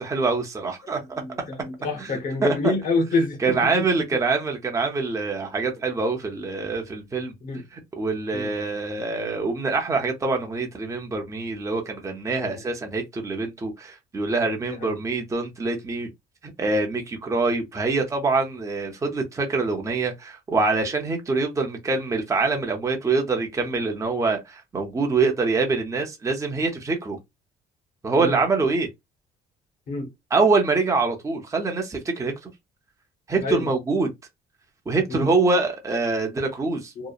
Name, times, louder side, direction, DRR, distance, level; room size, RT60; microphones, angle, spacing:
voice 1, 0.0-1.2 2.0-2.7 3.4-7.3 7.7-16.1 16.4-27.2 28.0-28.9 30.3-32.5 33.3-34.1 34.9-37.1, right 3 dB, 20° right, 0.6 m, -25 dB
voice 2, 1.1-3.9 7.4-7.6 8.3-8.5 12.4-12.6 14.7-14.9 28.2-28.4 29.9-30.1 33.4-33.7 35.1-35.3 37.0-37.1, left 3 dB, 50° left, 0.9 m, -27 dB
2.8 x 2.0 x 2.3 m
cardioid pair, 110°, 17 cm